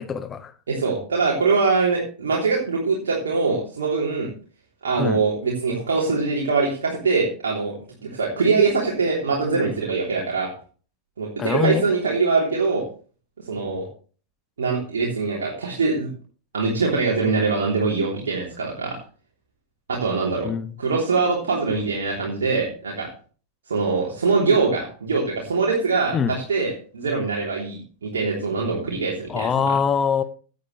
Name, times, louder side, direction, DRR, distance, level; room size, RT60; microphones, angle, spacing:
voice 1, 0.0-0.5 5.0-5.2 11.4-11.9 20.4-20.7 26.1-26.3 29.3-30.2, left 6 dB, 20° left, 0.9 m, -23 dB
voice 2, 0.7-4.3 4.8-7.7 8.0-10.5 11.2-12.8 13.5-13.9 14.6-16.1 16.5-19.0 19.9-20.5 20.8-23.1 23.7-29.7, right 4 dB, 65° right, 3.3 m, -23 dB
16.5 x 9.4 x 3.3 m
figure-of-eight pair, 90°, 0 cm